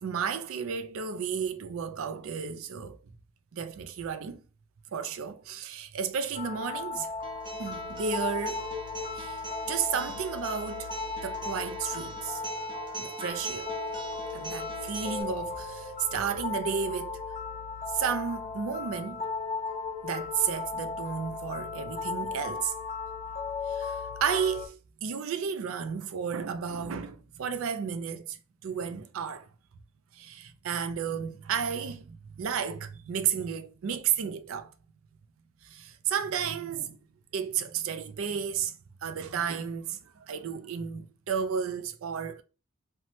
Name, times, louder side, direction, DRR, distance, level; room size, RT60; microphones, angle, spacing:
voice 1, 0.0-3.0 3.5-4.4 4.9-7.1 7.6-8.7 9.2-10.9 11.2-12.4 13.0-13.7 14.3-17.2 17.9-19.3 20.0-22.7 23.7-29.5 30.1-34.7 35.6-37.0 37.3-42.4, right 7 dB, 80° right, 0.4 m, -33 dB
sound 1, 6.3-24.7, left 4 dB, 30° left, 0.5 m, -36 dB
Acoustic guitar, 7.2-15.2, right 3 dB, 20° right, 0.5 m, -41 dB
2.8 x 2.1 x 3.0 m
head